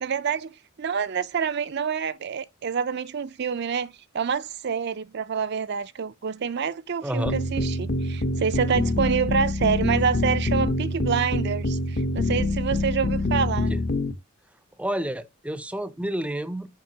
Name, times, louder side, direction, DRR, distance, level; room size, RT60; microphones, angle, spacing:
voice 1, 0.0-13.7, right 6 dB, 55° right, 0.5 m, -27 dB
voice 2, 7.0-7.3 13.7-13.8 14.8-16.7, right 1 dB, 5° right, 0.6 m, -29 dB
sound 1, 7.3-14.1, left 2 dB, 45° left, 0.8 m, -25 dB
7.5 x 5.4 x 2.8 m
head